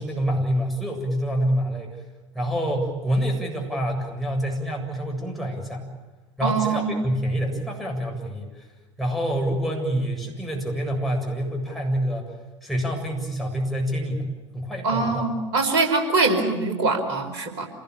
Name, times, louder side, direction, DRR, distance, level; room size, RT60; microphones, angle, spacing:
voice 1, 0.0-1.9 2.3-5.9 6.4-8.7 9.0-12.2 12.6-15.3, equal, ahead, -1 dB, 7.7 m, -27 dB
voice 2, 6.4-6.9 14.8-17.7, right 3 dB, 55° right, 5 dB, 5.0 m, -23 dB
27.0 x 19.5 x 8.7 m, 1.2 s
figure-of-eight pair, 70°, 15 cm